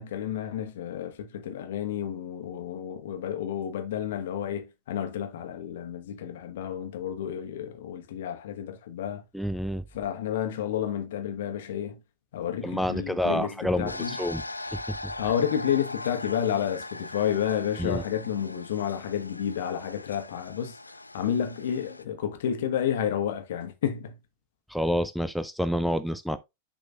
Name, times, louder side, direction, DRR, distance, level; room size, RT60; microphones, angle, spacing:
voice 1, 0.0-9.2 9.9-12.0 12.3-14.2 15.2-24.2, left 9 dB, 60° left, 1.2 m, -30 dB
voice 2, 9.3-9.8 12.6-14.4 14.7-15.1 17.8-18.0 24.7-26.4, equal, ahead, 0.4 m, -28 dB
sound 1, 13.9-22.0, left 2 dB, 85° left, 0.4 m, -40 dB
11.0 x 3.8 x 2.4 m
figure-of-eight pair, 90°, 0 cm